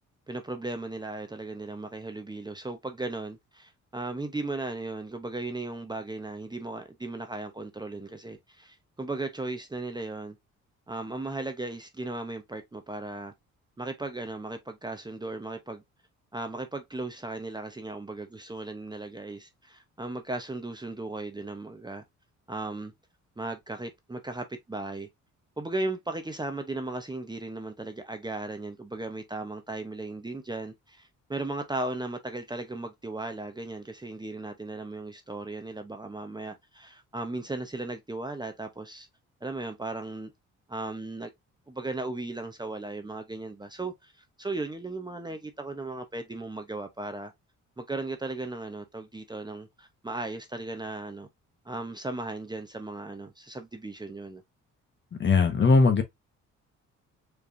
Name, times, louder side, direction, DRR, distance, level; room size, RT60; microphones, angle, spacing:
voice 1, 0.3-10.4 10.9-13.3 13.8-15.8 16.3-22.0 22.5-22.9 23.4-25.1 25.6-39.1 39.4-40.3 40.7-41.3 41.7-44.1 44.4-47.3 47.8-51.3 51.6-54.4, right 2 dB, 15° right, 0.8 m, -36 dB
voice 2, 55.2-56.0, left 4 dB, 40° left, 1.2 m, -19 dB
4.9 x 3.3 x 2.6 m
cardioid pair, 90°, 30 cm